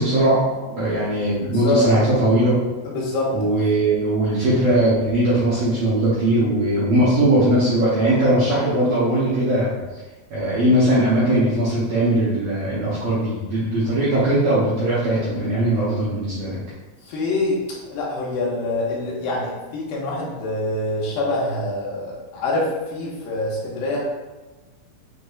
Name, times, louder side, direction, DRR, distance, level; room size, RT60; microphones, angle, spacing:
voice 1, 0.0-2.5 3.3-9.8 10.3-16.6 17.0-17.1, right 1 dB, 70° right, -10 dB, 1.6 m, -19 dB
voice 2, 1.4-1.8 2.9-3.3 17.1-24.0, left 2 dB, 80° left, -4 dB, 2.7 m, -25 dB
6.4 x 2.9 x 2.3 m, 1.2 s
omnidirectional pair, 4.1 m